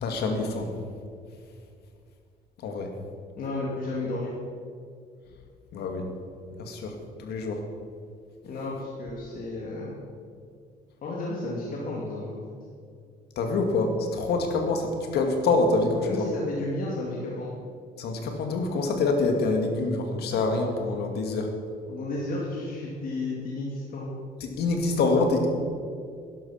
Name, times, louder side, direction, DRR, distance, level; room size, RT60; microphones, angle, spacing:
voice 1, 0.0-0.7 2.6-2.9 5.7-6.1 6.6-6.9 7.2-7.6 13.4-16.2 18.0-21.5 24.6-25.5, left 3 dB, 75° left, 4 dB, 2.3 m, -26 dB
voice 2, 3.4-4.3 8.4-10.0 11.0-12.4 16.0-17.5 21.9-24.1, left 2 dB, 55° left, -4 dB, 2.6 m, -32 dB
11.5 x 11.5 x 5.8 m, 2.3 s
cardioid pair, 110°, 17 cm